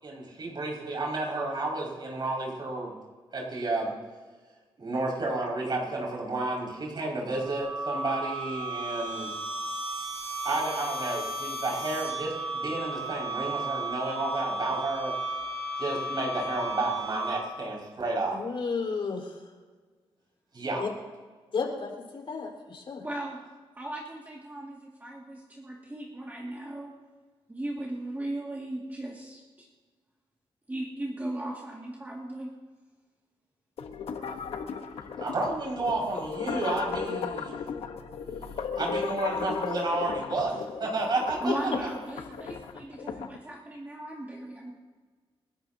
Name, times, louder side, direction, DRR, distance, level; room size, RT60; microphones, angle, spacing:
voice 1, 0.0-2.9 3.3-4.0 4.8-9.3 10.4-15.1 15.8-18.4 20.5-20.8 35.2-37.5 38.8-41.5, right 2 dB, 50° right, -2 dB, 5.8 m, -31 dB
sound 1, 7.3-17.7, right 2 dB, 90° right, 3.5 m, -34 dB
voice 2, 18.3-19.4 20.8-20.9 21.5-23.0 41.5-41.8, left 4 dB, 60° left, -1 dB, 4.5 m, -32 dB
voice 3, 23.0-23.4 23.8-26.9 27.5-29.7 30.7-32.5 41.4-44.7, right 1 dB, 20° right, -2 dB, 2.2 m, -37 dB
sound 2, 33.8-43.4, left 6 dB, 85° left, 1.2 m, -36 dB
29.5 x 12.0 x 2.8 m, 1.4 s
cardioid pair, 90°, 10 cm